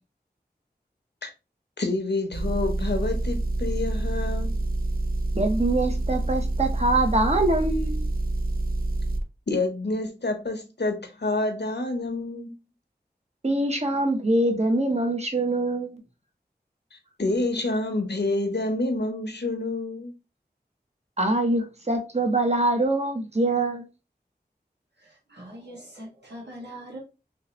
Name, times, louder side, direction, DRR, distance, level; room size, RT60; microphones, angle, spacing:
voice 1, 1.8-4.6 9.5-12.5 16.9-20.1, left 2 dB, 75° left, 0.9 m, -28 dB
Motor vehicle (road) / Engine, 2.3-9.2, right 2 dB, 60° right, 0.5 m, -27 dB
voice 2, 5.3-8.1 13.4-16.0 21.2-23.9, right 2 dB, 40° right, 0.9 m, -24 dB
voice 3, 25.0-27.0, right 1 dB, 85° right, 1.7 m, -42 dB
3.5 x 2.8 x 2.9 m
wide cardioid pair, 45°, 17 cm